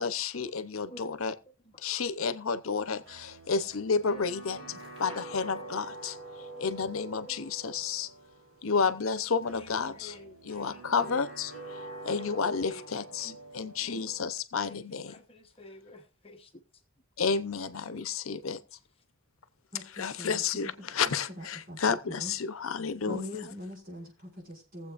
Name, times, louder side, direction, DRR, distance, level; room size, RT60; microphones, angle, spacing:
voice 1, 0.0-1.3 1.8-4.6 5.0-6.2 6.6-8.1 8.6-10.1 10.4-15.2 17.2-18.6 20.0-23.2, left 5 dB, 85° left, 0.8 m, -31 dB
sound 1, 2.7-14.2, right 2 dB, 75° right, 4.7 m, -46 dB
sound 2, 3.3-3.9 4.3-4.4 4.6-6.0 6.2-7.2 7.5-8.4 9.0-10.1 10.5-11.2 11.5-12.3 13.0-13.1, right 1 dB, 30° right, 3.2 m, -59 dB
voice 2, 9.5-10.4 10.7-11.2 12.1-14.1 14.6-16.5, left 1 dB, 30° left, 1.0 m, -50 dB
voice 3, 19.7-22.3 23.0-24.9, left 1 dB, 45° right, 5.6 m, -43 dB
21.0 x 7.8 x 2.5 m
head